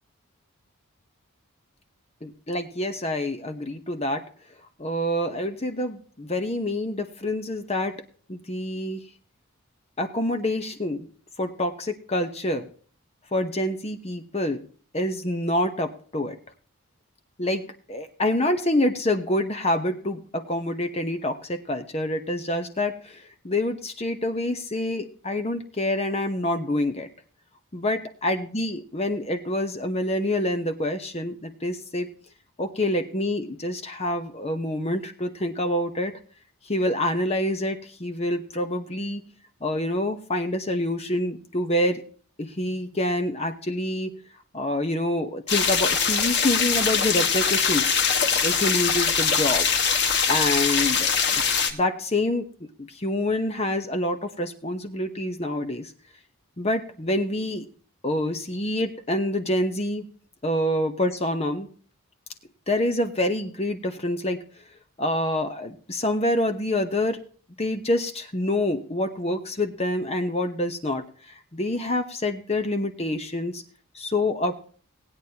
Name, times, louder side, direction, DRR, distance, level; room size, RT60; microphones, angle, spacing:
voice 1, 2.2-4.2 4.8-7.9 8.3-9.0 10.0-11.1 11.4-12.7 13.3-14.6 14.9-16.4 17.4-17.6 17.9-27.1 27.7-32.1 32.6-36.1 36.6-39.2 39.6-42.0 42.4-44.2 44.5-48.0 48.4-49.7 50.3-51.4 51.7-55.9 56.6-57.7 58.0-60.1 60.4-61.7 62.7-64.4 65.0-67.2 67.6-73.6 73.9-74.7, left 1 dB, 30° left, 6 dB, 0.9 m, -27 dB
sound 1, 45.5-51.7, left 6 dB, 50° left, 1.7 m, -22 dB
18.5 x 9.4 x 2.9 m, 0.43 s
head